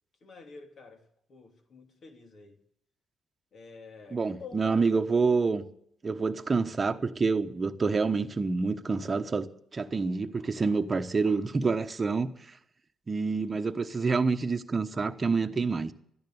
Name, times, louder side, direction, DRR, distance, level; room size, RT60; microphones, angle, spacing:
voice 1, 0.2-1.0 1.3-2.6 3.5-4.9, left 4 dB, 55° left, 4 dB, 3.0 m, -48 dB
voice 2, 4.1-5.6 6.0-9.5 9.7-12.3 13.1-15.9, right 4 dB, 30° right, 8 dB, 1.1 m, -27 dB
13.5 x 10.5 x 8.2 m, 0.71 s
cardioid pair, 90°, 0 cm